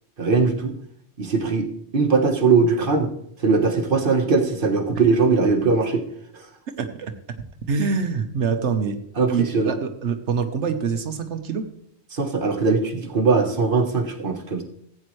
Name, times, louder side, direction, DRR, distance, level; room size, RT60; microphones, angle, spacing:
voice 1, 0.2-0.7 1.2-3.1 3.4-6.0 6.3-6.5 9.2-9.8 12.1-14.6, right 4 dB, 50° right, 5 dB, 1.4 m, -20 dB
voice 2, 6.8-7.1 7.7-9.0 9.3-11.7, right 5 dB, 85° right, 7 dB, 1.2 m, -25 dB
15.5 x 8.6 x 3.2 m, 0.70 s
omnidirectional pair, 1.2 m